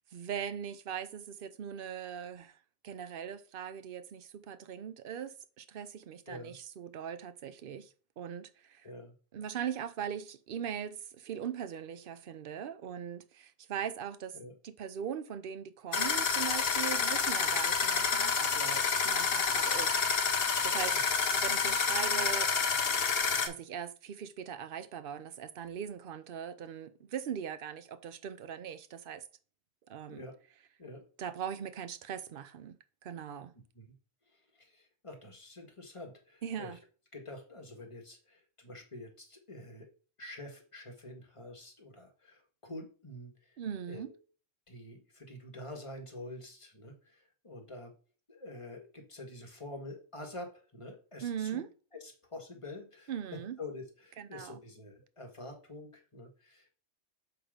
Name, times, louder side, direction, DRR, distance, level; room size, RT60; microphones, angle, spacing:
voice 1, 0.1-2.6 2.8-8.9 9.3-14.4 14.6-20.0 20.3-20.9 21.3-22.5 23.5-29.2 29.9-30.2 31.2-32.8 33.0-33.5 36.4-36.8 43.6-44.1 51.2-51.7 53.1-53.6 54.2-54.6, right 8 dB, 55° right, 0.8 m, -40 dB
sound 1, 15.9-23.5, left 5 dB, 60° left, 1.1 m, -29 dB
voice 2, 34.3-36.8 37.1-39.9 40.2-43.6 43.9-44.1 44.7-47.9 48.3-51.6 52.0-56.7, left 2 dB, 25° left, 1.6 m, -47 dB
6.9 x 3.8 x 5.0 m
omnidirectional pair, 1.2 m